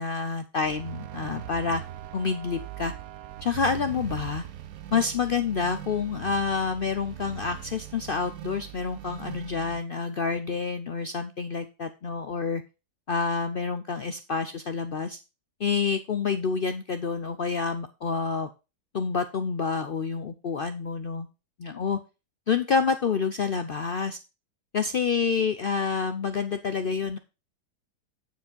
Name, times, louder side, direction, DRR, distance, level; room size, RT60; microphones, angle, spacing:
voice 1, 0.0-1.8 2.1-2.9 3.4-4.4 4.9-12.6 13.1-15.2 15.6-18.5 18.9-21.3 21.6-22.0 22.5-24.2 24.7-27.2, left 5 dB, 65° left, 9 dB, 0.5 m, -28 dB
sound 1, 0.6-9.8, right 11 dB, 70° right, 1.2 m, -40 dB
9.2 x 4.9 x 5.2 m, 0.29 s
omnidirectional pair, 1.7 m